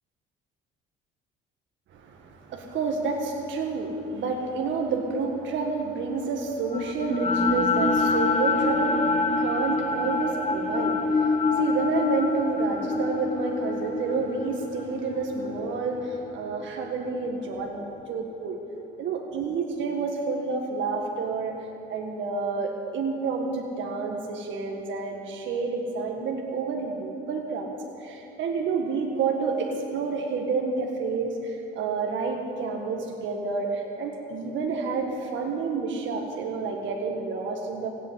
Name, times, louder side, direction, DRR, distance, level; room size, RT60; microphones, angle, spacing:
voice 1, 1.9-18.6 19.0-21.6 21.9-27.7 28.0-37.9, right 4 dB, 65° right, 1 dB, 1.8 m, -29 dB
sound 1, 6.7-16.9, left 3 dB, 35° left, 1.4 m, -26 dB
16.5 x 8.7 x 9.3 m, 2.7 s
supercardioid pair, 80°, 21 cm